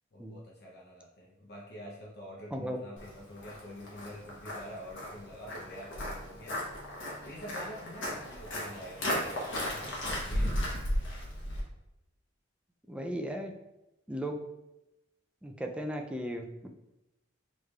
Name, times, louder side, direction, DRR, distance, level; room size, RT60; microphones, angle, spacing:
voice 1, 0.1-6.6 7.2-9.3 9.7-10.6, equal, 55° left, -3 dB, 0.7 m, -47 dB
Walk footsteps, 3.0-11.6, left 1 dB, 75° left, 1.2 m, -35 dB
voice 2, 12.9-13.5 14.1-14.4 15.4-16.7, equal, 5° right, 2 dB, 0.4 m, -36 dB
6.5 x 3.1 x 2.4 m, 0.94 s
head